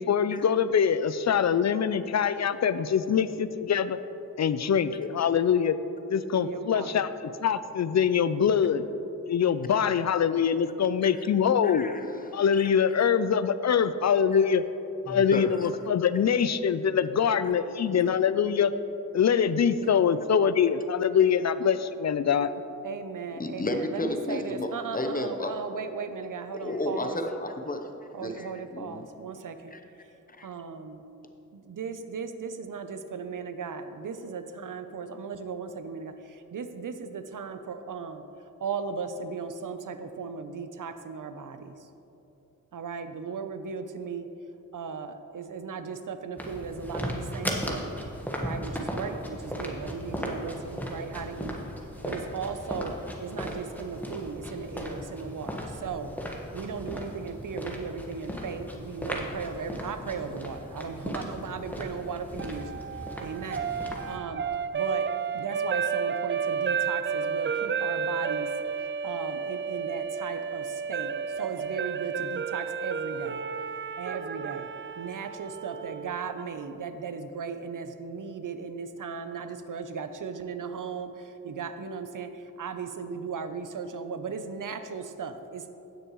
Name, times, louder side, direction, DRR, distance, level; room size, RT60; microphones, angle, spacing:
voice 1, 0.0-4.0 4.4-5.8 6.1-8.8 9.3-11.9 12.3-14.6 15.1-18.7 19.1-22.5, left 7 dB, 55° left, 13 dB, 0.5 m, -24 dB
voice 2, 6.3-6.9 22.8-27.2 28.1-29.7 30.4-31.0 31.5-36.1 36.5-38.2 38.6-41.7 42.7-44.3 44.7-47.9 48.4-51.5 52.0-52.9 53.2-56.1 56.5-62.7 63.2-63.7 64.1-64.4 64.7-65.1 65.3-68.5 69.0-71.1 71.4-73.4 74.0-74.7 75.0-81.1 81.4-82.3 82.6-85.7, right 5 dB, 70° right, 9 dB, 0.7 m, -36 dB
voice 3, 11.6-12.7 13.0-13.1 15.1-15.7 17.9-18.1 23.3-25.5 26.5-27.9 28.2-29.0 29.7-29.8 30.4-30.5, left 1 dB, 25° left, 5 dB, 0.9 m, -33 dB
sound 1, 46.4-64.2, equal, 5° left, 1.4 m, -37 dB
sound 2, 62.4-76.5, right 6 dB, 35° right, 0.4 m, -32 dB
16.5 x 6.5 x 3.1 m, 2.9 s
cardioid pair, 55°, 33 cm